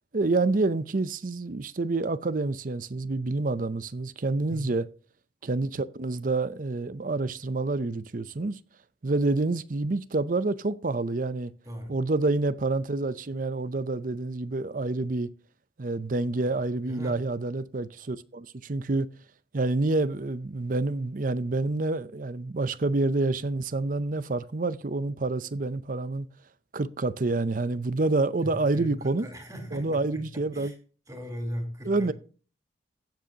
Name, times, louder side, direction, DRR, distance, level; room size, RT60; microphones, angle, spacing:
voice 1, 0.1-4.9 5.4-8.6 9.0-11.5 11.9-15.3 15.8-19.1 19.5-26.3 26.7-29.3 29.7-30.7 31.9-32.1, right 2 dB, 50° right, 0.6 m, -28 dB
voice 2, 11.6-12.0 16.4-16.5 16.9-17.2 28.4-30.7 31.1-32.1, equal, 20° right, 3.6 m, -38 dB
16.0 x 7.7 x 2.9 m
head